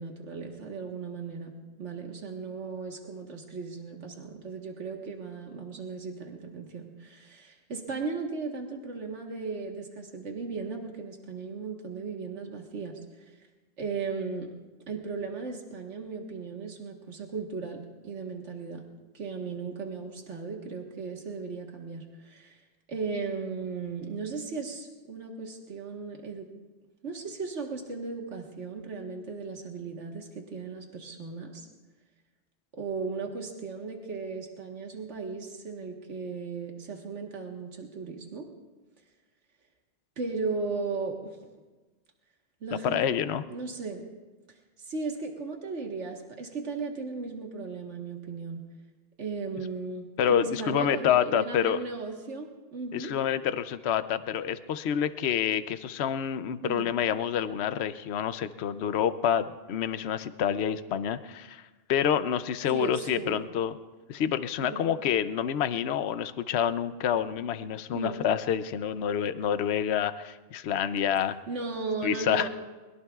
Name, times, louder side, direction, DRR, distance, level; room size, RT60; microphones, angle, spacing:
voice 1, 0.0-1.5 1.8-13.3 13.8-14.5 14.9-18.8 19.1-22.6 22.9-26.5 27.0-31.7 32.7-38.5 40.2-41.2 42.6-43.1 43.5-44.1 44.8-48.6 49.2-53.1 56.6-56.9 62.7-63.4 64.6-64.9 67.9-68.3 71.5-72.5, right 4 dB, 85° right, 1 dB, 1.8 m, -36 dB
voice 2, 42.8-43.4 50.2-51.8 52.9-61.6 61.9-63.7 64.1-71.4 72.0-72.5, left 9 dB, 70° left, 12 dB, 0.9 m, -28 dB
23.5 x 21.5 x 2.4 m, 1.2 s
omnidirectional pair, 1.2 m